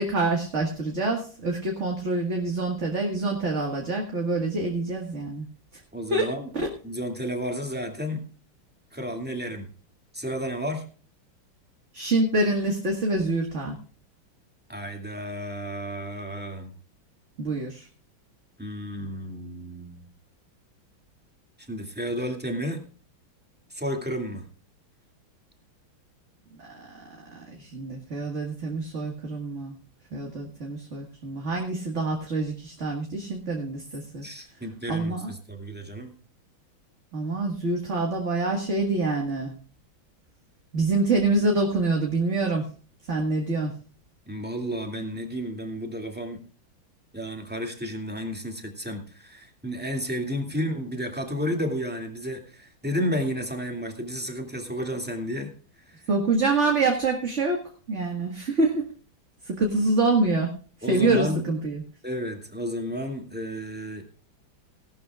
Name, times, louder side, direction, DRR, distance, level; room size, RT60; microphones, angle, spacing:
voice 1, 0.0-5.4 6.1-6.3 11.9-13.8 17.4-17.9 26.6-27.1 27.4-29.8 30.1-34.3 34.9-35.3 37.1-39.5 40.7-42.7 43.1-43.7 56.1-58.9 59.4-60.5 60.9-61.8, right 2 dB, 35° right, 1 dB, 1.9 m, -26 dB
voice 2, 5.9-6.5 6.8-8.3 8.9-9.7 10.1-10.8 14.7-16.7 18.6-20.1 21.6-22.8 23.7-24.4 34.2-36.1 44.3-46.4 47.1-55.5 55.8-56.0 60.8-61.5 62.0-64.1, equal, 5° right, 3 dB, 2.2 m, -32 dB
18.5 x 12.0 x 2.4 m, 0.40 s
omnidirectional pair, 2.2 m